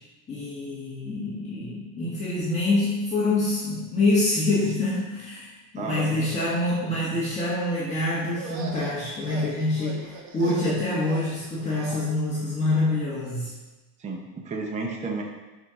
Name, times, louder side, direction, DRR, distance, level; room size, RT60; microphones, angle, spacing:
voice 1, 0.3-13.5, left 2 dB, 15° left, -8 dB, 1.7 m, -26 dB
voice 2, 5.8-6.3 14.0-15.2, right 3 dB, 15° right, 0 dB, 0.8 m, -32 dB
sound 1, 8.3-12.1, right 4 dB, 60° right, 1.5 m, -39 dB
11.0 x 4.5 x 5.1 m, 1.1 s
cardioid pair, 170°, 42 cm